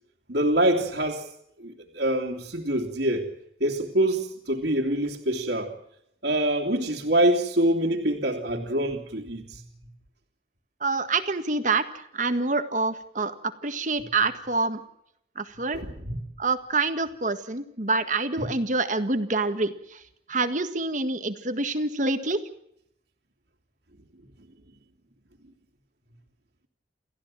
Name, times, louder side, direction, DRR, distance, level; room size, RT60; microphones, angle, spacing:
voice 1, 0.3-1.3 1.6-3.3 3.6-5.8 6.2-9.6 15.7-16.2 18.4-18.5, right 1 dB, 70° right, -3 dB, 3.0 m, -25 dB
voice 2, 10.8-13.3 13.6-14.8 15.4-15.8 16.4-20.0 20.3-22.4, right 3 dB, 45° right, 9 dB, 1.7 m, -26 dB
29.5 x 15.0 x 7.6 m, 0.76 s
head